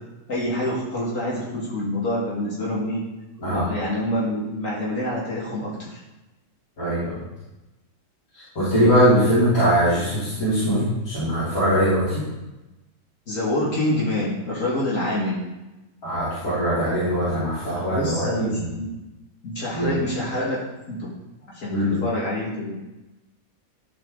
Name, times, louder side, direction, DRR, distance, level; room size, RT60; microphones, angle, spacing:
voice 1, 0.3-3.0 3.5-6.0 13.3-15.4 17.9-18.9 19.4-20.6 20.9-21.1 21.5-22.7, left 1 dB, 70° left, -6 dB, 2.1 m, -26 dB
voice 2, 6.8-7.2 8.6-12.2 16.0-18.7 19.7-19.9 21.7-22.0, equal, 90° left, -14 dB, 3.5 m, -21 dB
12.0 x 4.5 x 3.7 m, 1.0 s
omnidirectional pair, 1.4 m